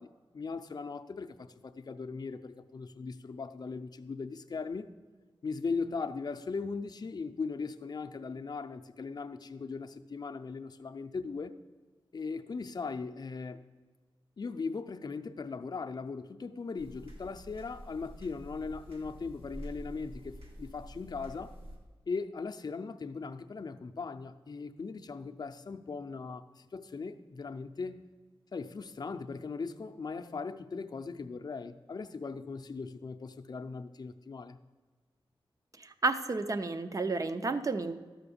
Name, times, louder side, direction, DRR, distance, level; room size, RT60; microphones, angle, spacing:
voice 1, 0.0-4.9 5.4-11.6 12.1-13.6 14.4-21.5 22.1-28.1 28.5-34.6, left 4 dB, 45° left, 0.5 m, -39 dB
sound 1, 16.8-21.8, equal, 80° right, 2.2 m, -48 dB
voice 2, 35.8-38.0, right 3 dB, 35° right, 0.6 m, -31 dB
12.5 x 5.8 x 7.0 m
wide cardioid pair, 140°, 9 cm